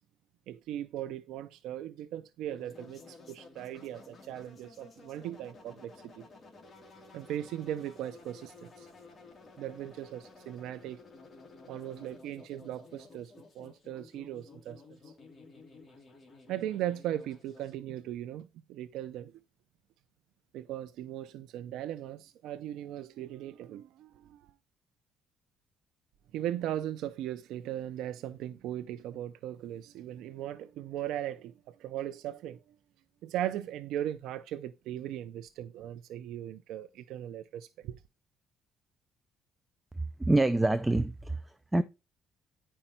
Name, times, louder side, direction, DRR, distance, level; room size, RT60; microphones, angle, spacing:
voice 1, 0.5-6.2 7.1-8.9 9.6-11.0 11.7-14.8 16.5-19.3 20.5-24.4 26.3-32.6 33.2-38.0, right 12 dB, 80° right, 0.6 m, -38 dB
sound 1, 2.5-17.7, left 3 dB, 25° left, 2.8 m, -54 dB
voice 2, 40.0-41.8, right 2 dB, 10° right, 0.5 m, -27 dB
10.0 x 5.6 x 4.4 m
cardioid pair, 140°, 0 cm